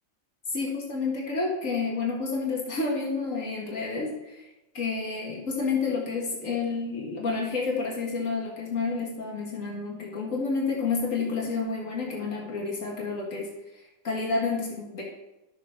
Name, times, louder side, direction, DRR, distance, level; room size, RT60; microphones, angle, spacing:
voice 1, 0.5-4.5 4.7-13.5 14.0-15.0, left 4 dB, 90° left, -2 dB, 2.2 m, -29 dB
12.0 x 7.1 x 4.4 m, 0.96 s
omnidirectional pair, 1.3 m